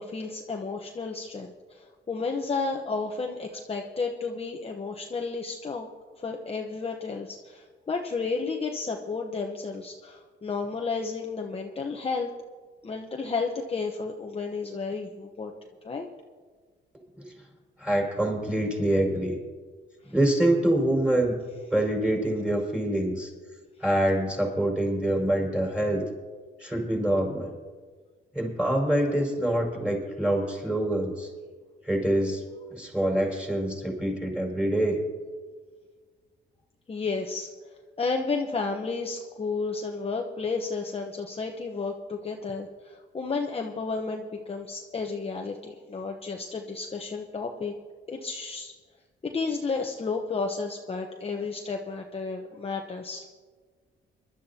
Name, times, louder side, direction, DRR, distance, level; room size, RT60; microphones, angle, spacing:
voice 1, 0.0-5.9 6.2-12.3 12.8-15.5 15.8-16.1 36.9-37.5 38.0-47.7 48.1-48.7 49.2-53.3, left 4 dB, 30° left, 2 dB, 1.0 m, -32 dB
voice 2, 17.8-19.4 20.1-21.4 21.7-23.3 23.8-26.0 26.6-27.5 28.3-31.3 31.8-32.4 32.7-35.0, right 1 dB, 5° right, -1 dB, 5.3 m, -25 dB
23.0 x 12.5 x 2.9 m, 1.5 s
cardioid pair, 90°, 20 cm